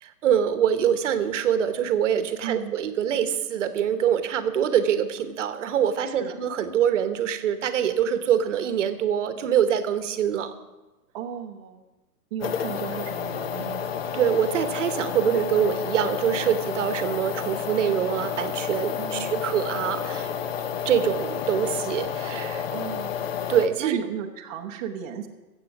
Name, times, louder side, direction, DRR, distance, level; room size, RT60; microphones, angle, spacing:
voice 1, 0.0-10.5 14.1-20.3 20.8-22.6 23.5-24.0, right 9 dB, 45° right, 10 dB, 1.1 m, -24 dB
voice 2, 2.4-2.7 6.1-6.4 11.1-11.8 12.3-13.9 18.9-19.5 22.7-23.3 23.8-25.3, right 8 dB, 25° right, 0 dB, 0.8 m, -35 dB
sound 1, 12.4-23.7, left 7 dB, 40° left, 0.7 m, -30 dB
15.5 x 7.6 x 6.0 m, 1.1 s
hypercardioid pair, 135°, 49 cm